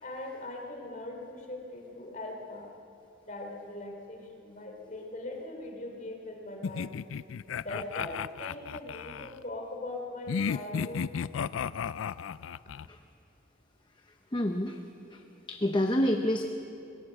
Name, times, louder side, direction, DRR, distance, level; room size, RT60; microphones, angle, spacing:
voice 1, 0.0-2.7 3.2-7.0 7.6-11.1, left 1 dB, 40° left, 2 dB, 3.1 m, -40 dB
sound 1, 6.6-9.3 10.3-12.9, left 7 dB, 85° left, 0.4 m, -34 dB
voice 2, 14.3-14.8 15.1-15.2 15.5-16.5, left 1 dB, 25° left, 4 dB, 0.8 m, -28 dB
20.0 x 17.5 x 7.5 m, 2.7 s
head